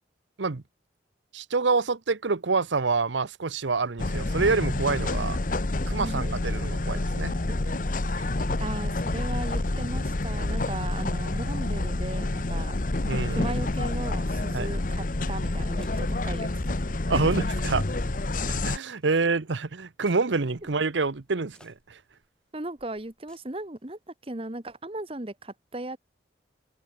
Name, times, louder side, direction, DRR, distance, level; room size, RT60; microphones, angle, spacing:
voice 1, 1.3-5.4 5.9-7.4 11.3-11.5 13.1-13.5 14.5-14.7 17.1-17.8 18.5-22.0, right 4 dB, 80° right, 0.9 m, -27 dB
sound 1, 4.0-18.8, left 2 dB, 45° left, 1.0 m, -28 dB
voice 2, 7.3-7.8 8.2-8.3 8.6-12.8 13.3-16.5 17.1-17.2 22.5-26.0, right 1 dB, 30° right, 1.3 m, -37 dB
sound 2, 15.8-19.3 20.0-24.0, left 1 dB, 5° left, 7.7 m, -60 dB
head